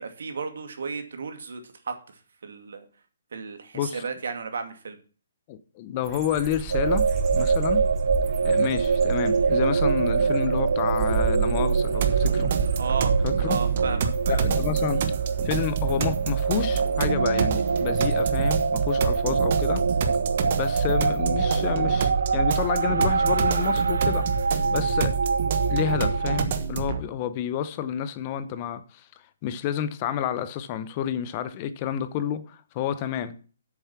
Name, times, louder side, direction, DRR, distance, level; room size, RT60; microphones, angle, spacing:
voice 1, 0.0-1.9 2.4-2.8 3.3-5.0 12.8-13.1 13.5-14.4, right 5 dB, 65° right, 2.3 m, -33 dB
voice 2, 5.5-7.1 7.3-7.9 8.4-12.5 13.2-13.6 14.3-15.0 15.4-19.8 20.5-24.3 24.7-25.2 25.7-29.1 29.4-33.4, left 10 dB, 20° left, 0.7 m, -29 dB
sound 1, 6.0-18.7, right 6 dB, 15° right, 1.2 m, -34 dB
sound 2, 6.7-26.5, right 5 dB, 85° right, 0.4 m, -25 dB
sound 3, 12.0-27.0, right 6 dB, 35° right, 1.1 m, -28 dB
8.4 x 7.1 x 5.8 m
hypercardioid pair, 175°, 0 cm